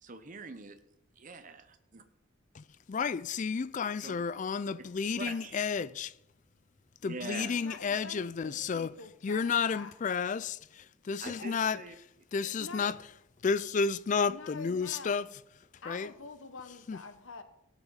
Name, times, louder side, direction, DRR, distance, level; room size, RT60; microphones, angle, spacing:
voice 1, 0.0-0.8 1.2-2.0 4.0-4.2 4.8-4.9 5.2-5.5 7.0-7.7 11.2-11.9 12.4-12.6, right 4 dB, 40° right, 0.8 m, -44 dB
voice 2, 2.5-6.1 7.0-8.9 9.2-11.8 12.3-13.0 13.4-15.3 15.9-16.1 16.9-17.0, left 5 dB, 40° left, 0.4 m, -32 dB
voice 3, 7.6-9.9 11.4-11.5 12.6-12.9 14.3-15.3 15.8-17.4, left 3 dB, 85° left, 1.3 m, -46 dB
17.5 x 6.0 x 5.7 m
head